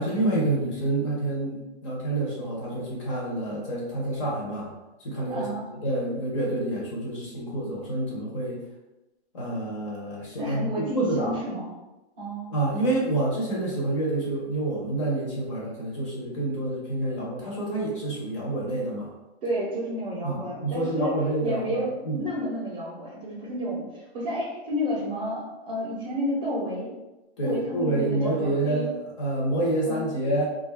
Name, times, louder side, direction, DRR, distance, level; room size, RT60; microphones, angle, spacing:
voice 1, 0.0-4.7 5.0-8.6 9.3-11.4 12.5-19.1 20.2-22.3 27.4-30.5, right 2 dB, 30° left, -4 dB, 0.7 m, -28 dB
voice 2, 5.3-5.7 10.4-11.7 12.2-12.5 19.4-21.1 21.4-26.9 27.4-28.8 29.9-30.1, equal, 20° right, -9 dB, 0.6 m, -31 dB
2.4 x 2.3 x 3.3 m, 1.0 s
hypercardioid pair, 165°, 33 cm